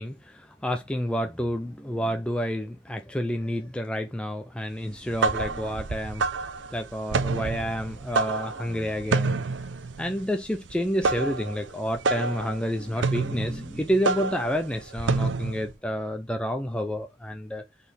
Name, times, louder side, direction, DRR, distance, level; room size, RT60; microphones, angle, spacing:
voice 1, 0.0-6.2 6.7-9.5 10.0-17.6, equal, 5° left, 0.5 m, -29 dB
sound 1, 4.9-15.7, right 4 dB, 80° right, 0.5 m, -29 dB
5.5 x 4.1 x 6.1 m
head